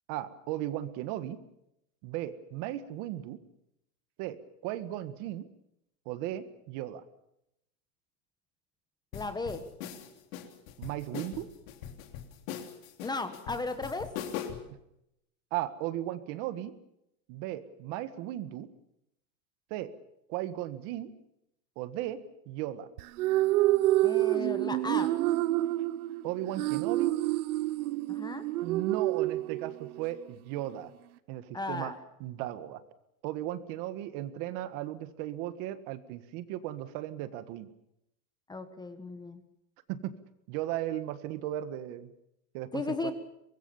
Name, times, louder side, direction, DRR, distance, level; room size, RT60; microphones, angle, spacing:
voice 1, 0.1-1.4 2.0-3.4 4.2-5.5 6.1-7.0 10.8-11.5 15.5-16.7 17.3-18.7 19.7-19.9 20.3-21.1 21.8-22.2 22.5-22.9 26.2-27.2 28.6-30.9 31.3-31.9 32.2-32.8 33.2-37.7 39.9-40.1 40.5-42.1 42.5-43.1, right 13 dB, 45° right, 12 dB, 1.8 m, -36 dB
sound 1, 9.1-14.7, left 9 dB, 65° left, 3.5 m, -41 dB
voice 2, 9.1-9.6 13.0-14.1 24.0-25.1 28.1-28.4 31.5-31.9 38.5-39.4 42.7-43.1, left 3 dB, 10° left, 10 dB, 1.4 m, -35 dB
sound 2, 23.0-30.0, right 16 dB, 80° right, 1.0 m, -28 dB
24.5 x 21.0 x 7.1 m, 0.81 s
supercardioid pair, 155°, 43 cm